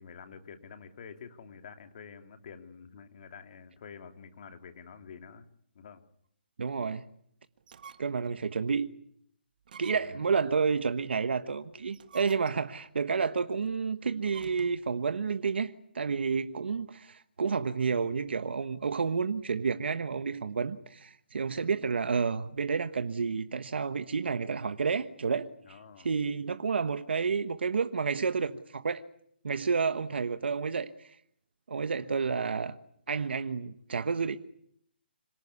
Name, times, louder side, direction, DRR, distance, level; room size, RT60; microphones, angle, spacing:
voice 1, 0.0-5.5 5.7-6.0 9.9-10.2 25.6-26.1, left 6 dB, 45° left, 2.9 m, -48 dB
voice 2, 6.6-7.1 8.0-8.9 9.8-29.0 29.4-31.1 31.7-32.7 33.1-34.4, right 5 dB, 70° right, 1.3 m, -30 dB
sound 1, 7.6-8.3 8.8-8.9 9.6-10.3 11.8-12.8 14.2-14.9, right 7 dB, 50° right, 1.5 m, -50 dB
26.5 x 18.0 x 9.8 m
hypercardioid pair, 165°, 6 cm